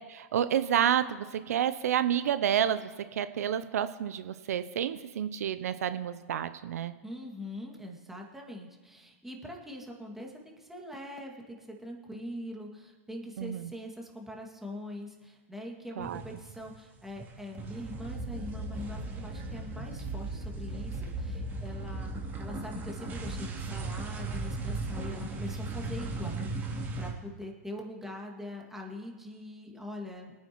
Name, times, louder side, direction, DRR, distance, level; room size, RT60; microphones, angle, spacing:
voice 1, 0.1-6.9 13.4-13.7 16.0-16.2, right 9 dB, 70° right, 12 dB, 0.6 m, -29 dB
voice 2, 7.0-22.1 22.4-26.5 27.0-30.4, left 1 dB, 5° right, -1 dB, 2.3 m, -43 dB
sound 1, 16.0-16.8 17.0-27.1, right 2 dB, 25° right, 3.1 m, -37 dB
23.5 x 9.5 x 3.1 m, 1.3 s
hypercardioid pair, 125°, 9 cm